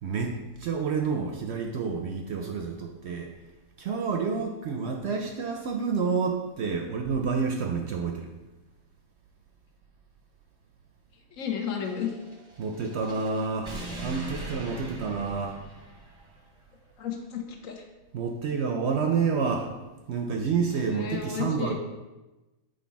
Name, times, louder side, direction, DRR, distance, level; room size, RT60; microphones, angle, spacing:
voice 1, 0.0-3.3 3.8-8.3 12.6-15.6 18.1-19.7 20.1-21.7, right 5 dB, 65° right, 3 dB, 0.7 m, -29 dB
voice 2, 11.3-12.1 17.0-17.8 20.8-21.7, left 7 dB, 70° left, 3 dB, 1.2 m, -32 dB
sound 1, 11.7-16.4, right 2 dB, 30° right, 0.6 m, -41 dB
6.5 x 3.2 x 4.5 m, 1.1 s
omnidirectional pair, 1.5 m